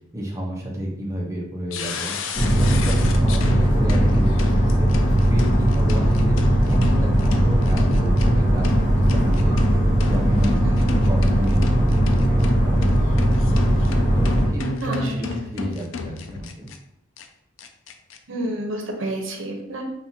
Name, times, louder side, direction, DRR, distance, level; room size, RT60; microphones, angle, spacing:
voice 1, 0.1-2.1 2.6-4.9 5.3-6.4 6.6-8.7 9.0-9.6 10.0-13.2 14.1-16.7, right 1 dB, 15° right, -3 dB, 0.9 m, -30 dB
sound 1, 1.7-16.8 17.2-17.3 17.6-18.2, left 5 dB, 75° left, 0.4 m, -32 dB
sound 2, 2.3-14.5, equal, 40° left, 1.1 m, -18 dB
voice 2, 10.6-10.9 14.8-15.1 18.3-19.8, right 1 dB, 75° right, 2 dB, 0.9 m, -29 dB
5.5 x 2.6 x 2.8 m, 0.79 s
head